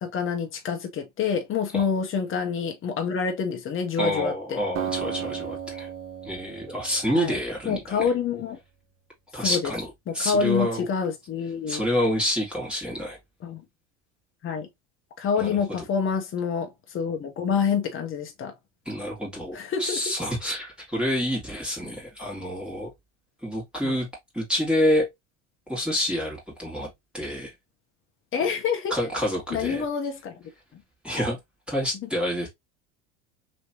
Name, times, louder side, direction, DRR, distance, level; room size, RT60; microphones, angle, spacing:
voice 1, 0.0-4.6 7.1-7.4 7.6-8.6 9.4-9.7 10.1-11.8 13.4-13.6 14.4-14.7 15.2-18.5 19.5-20.0 23.8-24.0 28.3-29.0 29.5-30.4 30.7-30.8 32.0-32.1, left 6 dB, 35° left, 1.2 m, -27 dB
voice 2, 4.0-5.9 6.2-8.1 9.3-9.9 10.1-10.9 11.7-13.2 15.4-15.6 18.9-22.9 23.4-24.1 24.3-25.1 25.7-26.9 27.1-27.5 28.9-29.8 31.0-31.4 31.7-32.5, equal, 5° right, 2.0 m, -27 dB
Acoustic guitar, 4.7-7.9, right 8 dB, 40° right, 0.9 m, -35 dB
3.2 x 3.1 x 2.7 m
hypercardioid pair, 90°, 35 cm